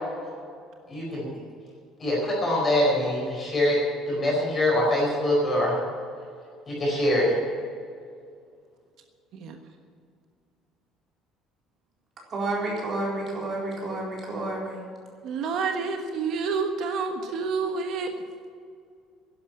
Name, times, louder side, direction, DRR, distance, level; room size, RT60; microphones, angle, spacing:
voice 1, 0.9-1.2 2.0-3.8 4.1-5.8 6.7-7.3, left 1 dB, 20° left, -3 dB, 4.8 m, -24 dB
voice 2, 12.3-14.8, right 2 dB, 30° right, -3 dB, 4.1 m, -30 dB
voice 3, 15.2-18.1, right 5 dB, 50° right, 5 dB, 1.3 m, -28 dB
11.5 x 11.5 x 8.9 m, 2.3 s
cardioid pair, 170°, 0 cm